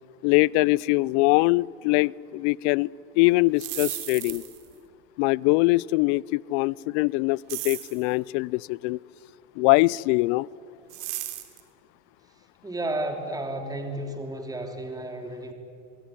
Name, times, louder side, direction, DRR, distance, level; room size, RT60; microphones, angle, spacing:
voice 1, 0.2-2.9 3.2-4.4 5.2-9.0 9.6-10.5, left 22 dB, 65° left, 25 dB, 0.6 m, -22 dB
sound 1, 3.4-4.7 7.5-8.0 10.9-11.6, right 16 dB, 65° right, 3.1 m, -34 dB
voice 2, 12.6-15.5, right 1 dB, 10° right, 4 dB, 3.0 m, -32 dB
24.0 x 21.5 x 9.8 m, 2.6 s
supercardioid pair, 105°, 37 cm